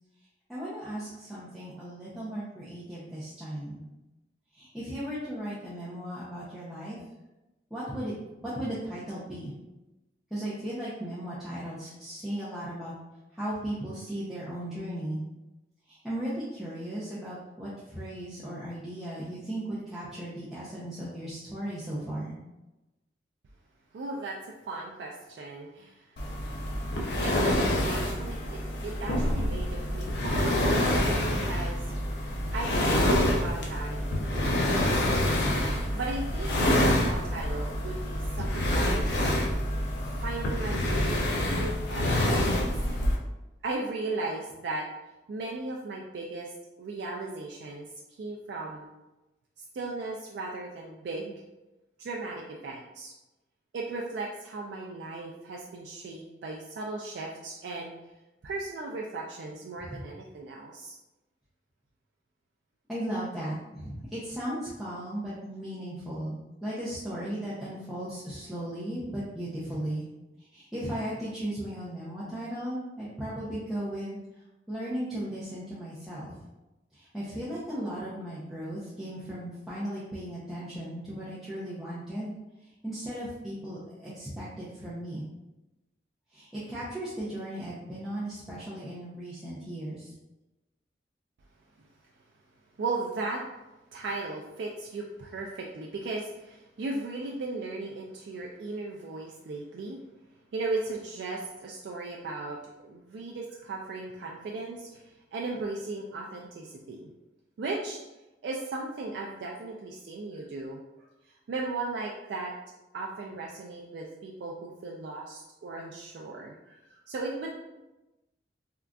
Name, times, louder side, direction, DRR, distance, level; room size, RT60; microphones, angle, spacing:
voice 1, 0.5-3.8 4.5-7.0 7.7-8.2 8.4-9.5 10.3-12.9 13.3-15.2 15.9-22.3 59.8-60.0 62.9-70.1 70.4-74.2 74.7-76.4 76.9-82.3 82.6-85.2 86.3-90.1, right 1 dB, ahead, -11 dB, 0.5 m, -36 dB
voice 2, 23.9-26.1 27.2-31.9 32.5-34.7 35.9-39.0 40.2-42.6 43.6-44.9 45.3-46.5 46.8-47.9 48.2-48.9 49.7-51.3 52.0-53.1 53.7-57.9 58.4-61.0 92.8-93.4 93.9-100.0 100.5-105.0 105.3-107.1 107.6-108.0 108.4-111.1 111.5-112.5 112.9-117.6, right 3 dB, 75° right, -1 dB, 0.3 m, -37 dB
sound 1, 26.2-43.2, left 1 dB, 70° left, 0.5 m, -27 dB
3.6 x 2.4 x 2.2 m, 1.0 s
head